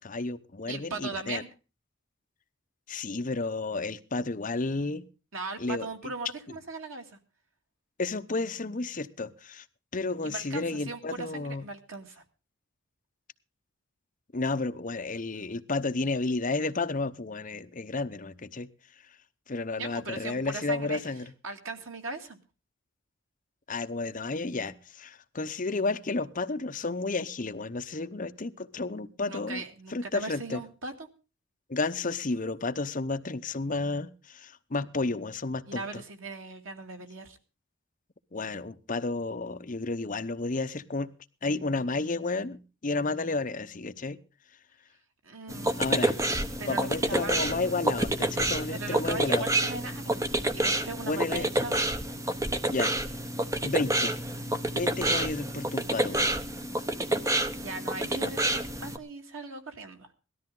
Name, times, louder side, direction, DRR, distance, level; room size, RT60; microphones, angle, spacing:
voice 1, 0.0-1.4 2.9-5.1 5.6-6.1 6.5-6.6 8.0-9.6 9.9-11.7 14.3-18.7 19.5-21.3 23.7-29.6 29.9-30.6 31.7-36.0 38.3-41.1 41.4-44.2 45.8-46.2 46.7-49.5 51.1-51.5 52.7-53.0 53.6-54.2 54.7-56.3 58.1-58.3, left 3 dB, 40° left, 9 dB, 0.8 m, -32 dB
voice 2, 0.7-1.5 5.3-7.2 10.2-12.2 19.8-21.0 21.4-22.4 29.3-31.1 35.7-37.4 45.2-45.9 46.6-47.7 48.7-50.2 50.5-51.8 57.6-60.1, right 3 dB, 80° right, 5 dB, 2.4 m, -39 dB
sound 1, 45.5-59.0, right 1 dB, 15° right, 1.0 m, -28 dB
18.5 x 13.0 x 3.8 m, 0.33 s
head